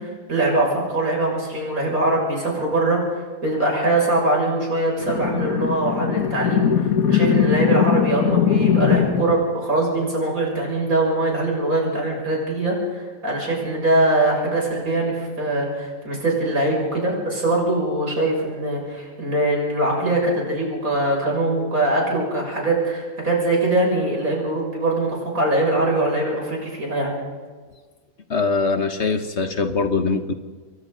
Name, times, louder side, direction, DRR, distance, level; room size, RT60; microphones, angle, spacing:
voice 1, 0.0-3.0 3.4-27.1, right 2 dB, 75° right, -2 dB, 7.3 m, -22 dB
sound 1, 5.0-9.4, left 8 dB, 80° left, 1.7 m, -20 dB
voice 2, 28.3-30.3, left 4 dB, 50° left, 8 dB, 1.5 m, -22 dB
28.5 x 23.0 x 4.0 m, 1.4 s
omnidirectional pair, 1.5 m